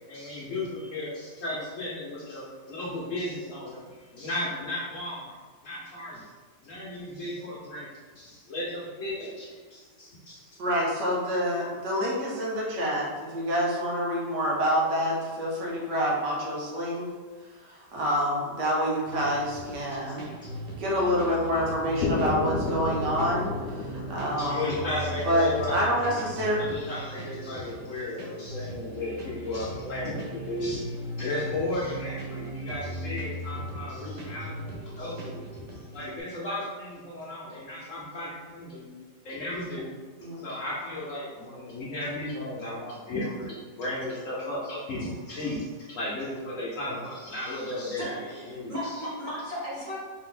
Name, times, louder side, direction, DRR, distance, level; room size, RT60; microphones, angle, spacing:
voice 1, 0.1-3.8 4.1-5.4 5.6-6.3 6.6-7.9 8.2-10.5 20.3-20.4 24.4-25.9 26.7-35.6 35.9-39.0 39.2-39.9 40.4-48.2 48.5-49.0, left 1 dB, 60° left, -6 dB, 1.0 m, -35 dB
voice 2, 10.6-17.1 17.7-20.3 20.8-24.9 25.3-26.6 40.2-40.4, equal, 75° right, -3 dB, 1.5 m, -27 dB
sound 1, 19.1-36.2, equal, 50° right, 0.5 m, -38 dB
sound 2, 22.0-25.9, left 3 dB, 80° left, 1.2 m, -32 dB
voice 3, 48.0-50.0, equal, 30° right, -8 dB, 1.3 m, -35 dB
4.1 x 2.8 x 3.8 m, 1.4 s
omnidirectional pair, 1.9 m